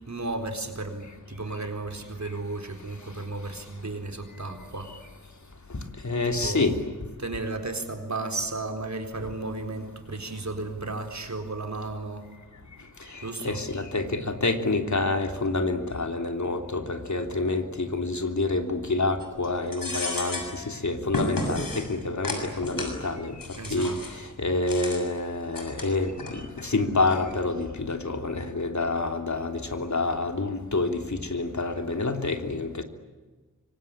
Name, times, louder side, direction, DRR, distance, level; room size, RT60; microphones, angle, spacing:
voice 1, 0.1-4.9 6.3-6.7 7.2-12.3 13.2-13.6 23.6-24.0, right 2 dB, 55° right, 4 dB, 4.2 m, -34 dB
voice 2, 6.0-6.8 13.1-23.3 23.7-23.9 24.4-32.8, left 3 dB, 55° left, 5 dB, 3.2 m, -28 dB
sound 1, 19.2-19.5 19.7-20.6 21.1-21.9 22.2-23.0 23.4-24.2 24.6-25.0 25.5-26.3 26.6-26.7 27.1-27.4, left 1 dB, 85° left, 6.7 m, -32 dB
25.5 x 25.0 x 8.9 m, 1.3 s
wide cardioid pair, 80°, 33 cm